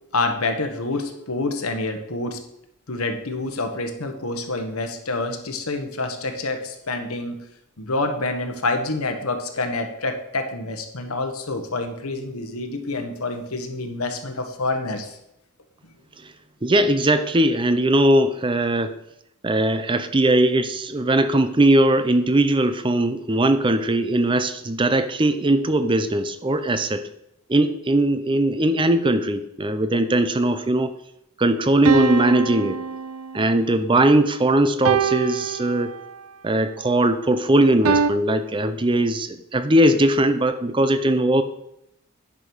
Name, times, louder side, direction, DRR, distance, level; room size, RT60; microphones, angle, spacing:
voice 1, 0.1-2.4 2.9-7.4 7.8-15.2, left 2 dB, 80° left, 6 dB, 1.4 m, -27 dB
voice 2, 16.6-19.0 19.4-27.1 27.5-30.9 31.4-32.8 33.3-35.9 36.4-41.4, right 1 dB, 20° right, 11 dB, 0.5 m, -20 dB
sound 1, 31.9-33.6 34.9-36.3 37.9-38.1, right 6 dB, 75° right, 0.5 m, -24 dB
10.0 x 5.3 x 6.2 m, 0.81 s
head